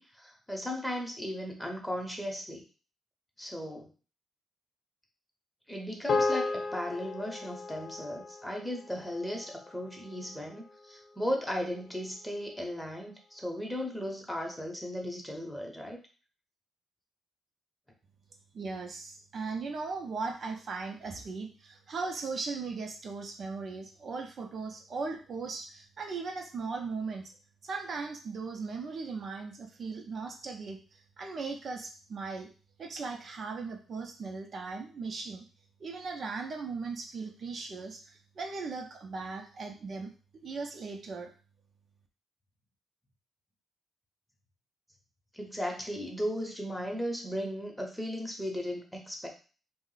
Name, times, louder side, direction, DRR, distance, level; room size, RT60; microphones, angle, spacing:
voice 1, 0.0-2.6 3.4-3.9 5.7-16.0 45.3-49.3, equal, 5° left, 1 dB, 0.8 m, -36 dB
sound 1, 6.1-10.6, left 3 dB, 55° left, 0.4 m, -34 dB
voice 2, 18.5-27.3 27.6-32.5 32.8-35.5 35.8-40.1 40.4-41.3, right 4 dB, 55° right, 2 dB, 0.5 m, -38 dB
2.5 x 2.0 x 3.9 m, 0.36 s
cardioid pair, 85°, 0 cm